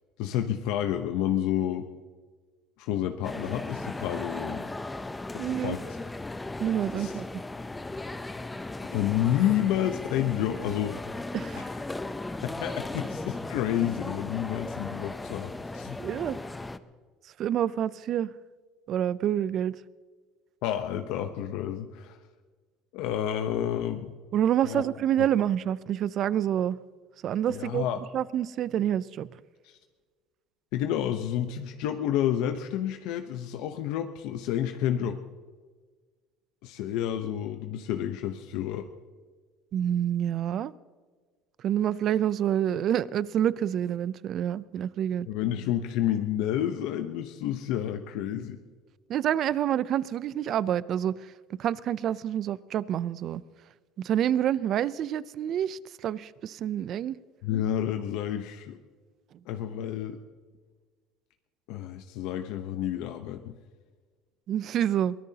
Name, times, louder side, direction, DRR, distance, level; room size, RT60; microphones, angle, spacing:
voice 1, 0.2-1.9 2.8-4.7 5.3-6.0 6.9-7.1 8.8-11.0 11.5-11.8 12.4-16.0 20.6-22.2 22.9-24.1 24.6-24.8 27.5-28.0 29.6-29.8 30.7-35.2 36.6-38.9 45.3-48.6 57.4-58.8 59.5-60.2 61.7-63.5, left 11 dB, 70° left, 0.8 m, -30 dB
sound 1, 3.2-16.8, left 2 dB, 10° left, 0.6 m, -37 dB
voice 2, 5.4-5.8 6.6-7.3 11.3-11.7 16.0-16.4 17.4-18.3 18.9-19.8 24.3-26.8 27.2-27.9 28.1-29.3 39.7-40.7 41.6-45.3 49.1-51.3 51.6-53.4 54.0-57.2 64.5-65.1, right 10 dB, 45° right, 0.5 m, -27 dB
23.0 x 17.5 x 2.9 m
cardioid pair, 135°, 0 cm